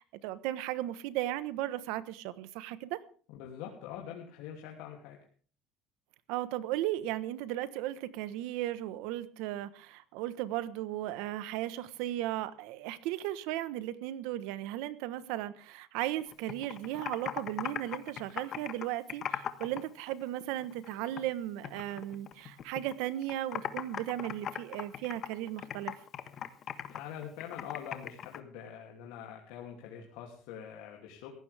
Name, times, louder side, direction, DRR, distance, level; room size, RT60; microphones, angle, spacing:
voice 1, 0.0-3.0 6.3-25.9, right 14 dB, 85° right, 15 dB, 1.3 m, -36 dB
voice 2, 3.3-5.2 26.9-31.3, left 9 dB, 85° left, 0 dB, 2.9 m, -44 dB
Computer keyboard, 16.3-19.8 20.1-21.3 21.6-22.9 23.2-28.4, left 9 dB, 40° left, 1.4 m, -39 dB
18.5 x 15.5 x 3.5 m, 0.43 s
cardioid pair, 145°, 0 cm